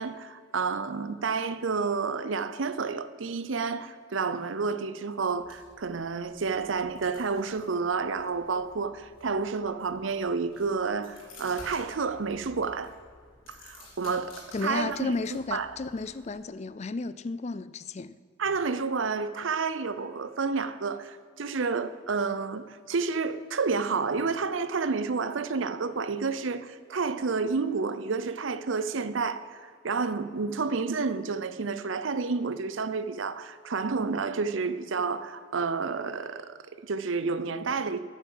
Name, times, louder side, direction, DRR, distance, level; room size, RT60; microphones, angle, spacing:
voice 1, 0.0-12.9 13.5-15.1 15.5-15.8 18.4-38.0, right 4 dB, 75° right, 0.6 m, -30 dB
sound 1, 5.4-16.4, left 2 dB, 85° left, 3.6 m, -53 dB
voice 2, 14.5-18.1, left 3 dB, 35° left, 0.4 m, -33 dB
9.4 x 8.1 x 7.3 m
head